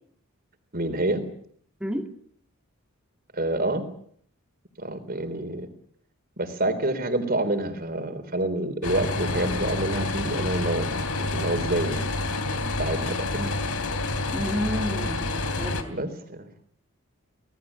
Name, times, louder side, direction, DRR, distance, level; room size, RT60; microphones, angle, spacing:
voice 1, 0.7-1.2 3.3-3.8 4.8-5.7 6.4-10.9 11.3-12.0 12.8-13.3 15.9-16.5, right 1 dB, 40° right, 3.9 m, -27 dB
sound 1, 8.8-15.8, left 2 dB, 90° left, 3.3 m, -28 dB
voice 2, 14.3-16.0, equal, 5° right, 2.3 m, -31 dB
26.0 x 19.0 x 8.6 m
head